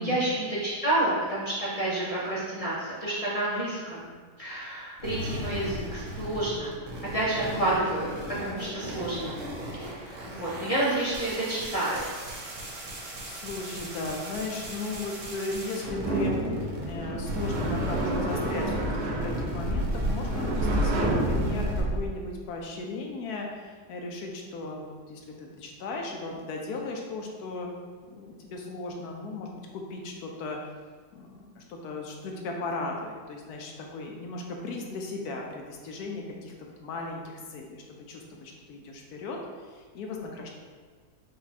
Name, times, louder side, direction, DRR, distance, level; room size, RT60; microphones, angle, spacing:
voice 1, 0.0-4.1 4.4-6.7 7.1-8.1 8.4-9.4 9.7-12.1, right 1 dB, 50° left, -8 dB, 0.4 m, -29 dB
sound 1, 5.0-17.0 17.2-21.8, equal, 55° right, 1.1 m, -38 dB
voice 2, 13.3-16.3 16.6-27.7 28.1-30.7 31.1-40.5, left 3 dB, 75° left, 1 dB, 1.1 m, -37 dB
sound 2, 15.9-22.0, right 1 dB, 85° right, 1.4 m, -28 dB
5.1 x 2.3 x 4.1 m, 1.6 s
omnidirectional pair, 1.7 m